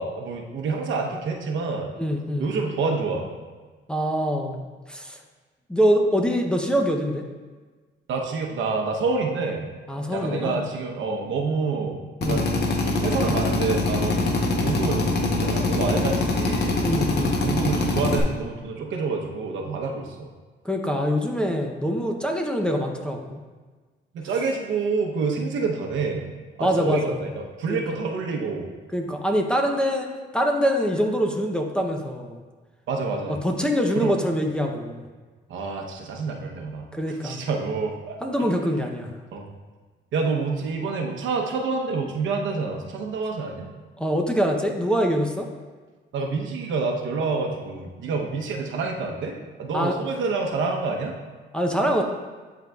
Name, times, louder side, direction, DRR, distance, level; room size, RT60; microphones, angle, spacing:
voice 1, 0.0-1.9 2.4-3.3 8.1-9.7 10.1-12.0 12.3-12.4 13.0-16.8 17.4-20.3 24.1-26.3 26.6-27.3 27.6-28.7 32.9-33.4 33.9-34.1 35.5-38.2 39.3-39.4 40.1-43.7 46.1-51.1, right 4 dB, 75° right, 1 dB, 0.9 m, -27 dB
voice 2, 2.0-2.5 3.9-5.2 5.7-7.2 9.9-10.6 12.2-12.5 14.2-14.4 16.8-17.4 20.6-23.4 26.6-27.2 27.7-27.8 28.9-30.1 30.3-32.4 33.4-35.1 36.9-37.4 38.2-39.1 44.0-45.5 49.7-50.0 51.5-52.0, equal, 5° left, 2 dB, 0.7 m, -24 dB
Drill, 12.2-18.2, left 2 dB, 55° left, 0.9 m, -24 dB
10.5 x 3.9 x 2.3 m, 1.4 s
cardioid pair, 90°, 20 cm